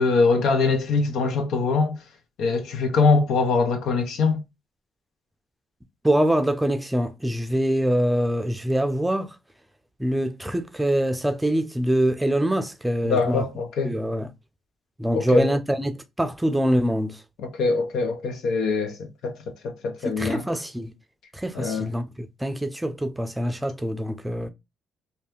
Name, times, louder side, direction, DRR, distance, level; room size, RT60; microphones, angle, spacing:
voice 1, 0.0-1.9 2.4-4.4 13.0-14.0 15.1-15.5 17.4-20.4 21.5-21.9, left 4 dB, 80° left, 0.7 m, -23 dB
voice 2, 6.0-9.3 10.0-13.4 13.8-14.3 15.0-17.2 20.1-20.9 21.3-24.5, right 1 dB, 10° right, 0.5 m, -24 dB
2.7 x 2.3 x 3.4 m
cardioid pair, 90°, 0 cm